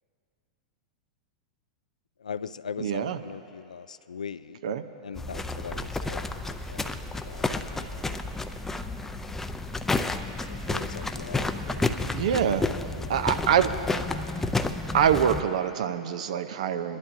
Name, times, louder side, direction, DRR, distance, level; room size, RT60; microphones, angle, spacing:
voice 1, 2.2-4.6 5.0-7.0 7.2-8.0 10.4-12.3 12.7-13.5, left 6 dB, 90° left, 15 dB, 0.3 m, -41 dB
voice 2, 2.8-3.2 4.6-4.8 12.1-12.7 13.1-13.8 14.9-17.0, right 8 dB, 70° right, 10 dB, 0.6 m, -25 dB
sound 1, 5.2-15.4, left 2 dB, 10° left, 0.5 m, -31 dB
24.0 x 11.5 x 2.7 m, 2.6 s
hypercardioid pair, 105°, 4 cm